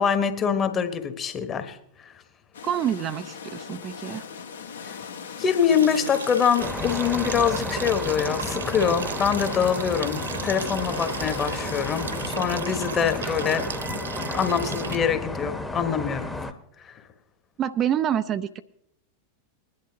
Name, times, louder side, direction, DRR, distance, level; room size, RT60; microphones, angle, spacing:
voice 1, 0.0-2.1 4.8-5.0 5.4-14.0 14.3-16.3 16.8-17.0, left 7 dB, 25° left, 8 dB, 1.3 m, -25 dB
sound 1, 2.5-12.2, left 7 dB, 65° left, 1.5 m, -40 dB
voice 2, 2.6-4.3 17.6-18.6, right 10 dB, 30° right, 11 dB, 0.5 m, -27 dB
sound 2, 5.7-15.0, right 6 dB, 70° right, 0.6 m, -35 dB
sound 3, 6.6-16.5, left 2 dB, 5° left, 1.1 m, -33 dB
21.0 x 11.0 x 2.9 m, 0.75 s
figure-of-eight pair, 90°, 0 cm